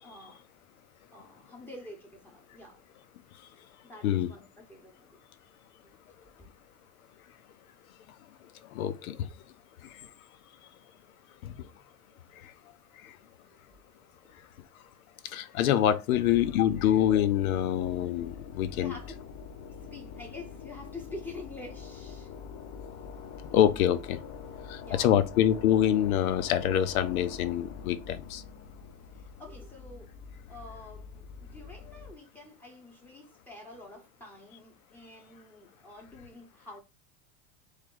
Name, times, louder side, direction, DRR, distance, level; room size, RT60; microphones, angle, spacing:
voice 1, 0.0-0.4 1.1-2.8 3.8-5.2 6.4-6.5 12.1-12.8 18.7-19.2 19.9-22.3 24.5-25.2 29.1-30.1 30.5-36.8, left 2 dB, 5° left, 1.0 m, -47 dB
voice 2, 8.7-9.3 11.4-11.5 12.4-12.5 13.0-13.1 15.3-18.9 23.5-24.2 24.7-28.4, left 11 dB, 90° left, 0.7 m, -26 dB
sound 1, 16.1-32.1, left 6 dB, 35° left, 0.7 m, -45 dB
3.6 x 3.3 x 3.8 m
supercardioid pair, 145°, 42 cm